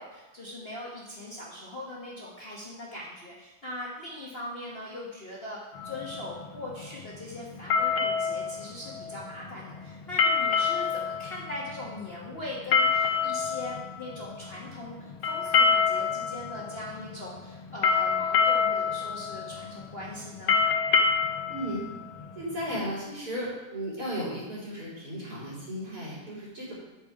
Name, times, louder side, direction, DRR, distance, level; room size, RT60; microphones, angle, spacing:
voice 1, 0.0-20.6, left 1 dB, 35° left, -5 dB, 1.3 m, -40 dB
sound 1, 5.7-22.9, left 5 dB, 90° left, 1.6 m, -28 dB
voice 2, 21.5-21.9 22.4-26.7, equal, 50° right, -8 dB, 4.4 m, -35 dB
8.5 x 7.3 x 4.6 m, 1.1 s
omnidirectional pair, 2.2 m